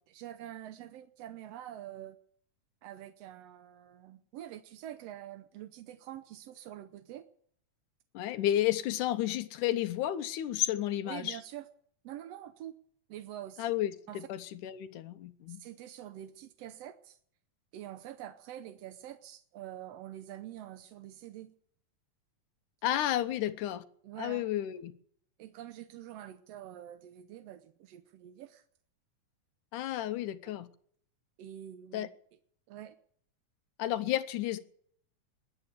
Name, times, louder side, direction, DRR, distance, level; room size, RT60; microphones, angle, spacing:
voice 1, 0.1-2.2 2.8-7.2 11.0-11.7 12.0-12.8 13.1-13.7 14.1-14.3 15.5-17.2 17.7-21.5 24.0-24.5 25.4-28.6 31.4-32.1 32.7-32.9, right 12 dB, 70° right, 1.6 m, -46 dB
voice 2, 8.1-11.4 13.6-15.6 22.8-23.8 24.2-24.9 29.7-30.7 31.9-32.1 33.8-34.6, left 13 dB, 80° left, 2.4 m, -32 dB
21.0 x 8.4 x 8.2 m
omnidirectional pair, 3.6 m